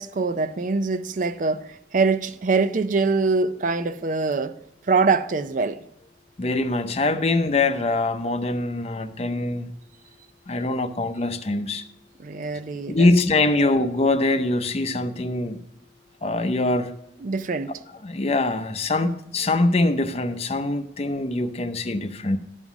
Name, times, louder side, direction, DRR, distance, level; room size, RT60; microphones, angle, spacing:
voice 1, 0.0-4.6 4.8-5.9 12.2-13.1 13.4-13.5 17.2-17.7 19.0-19.2, right 4 dB, 45° right, 0.4 m, -24 dB
voice 2, 6.4-9.8 10.5-11.8 12.9-15.6 16.2-16.9 18.0-22.4, left 2 dB, 35° left, 0.7 m, -23 dB
12.0 x 5.6 x 6.0 m
head